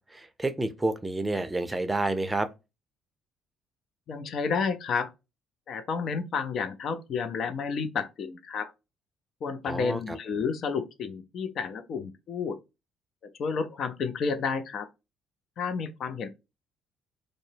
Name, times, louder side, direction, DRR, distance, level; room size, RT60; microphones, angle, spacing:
voice 1, 0.1-2.5 9.6-10.2, right 2 dB, 15° right, 0.5 m, -29 dB
voice 2, 4.1-5.1 5.7-8.7 9.4-12.6 13.4-14.9 15.6-16.3, left 5 dB, 55° left, 0.4 m, -31 dB
2.6 x 2.0 x 2.6 m
hypercardioid pair, 55°, 0 cm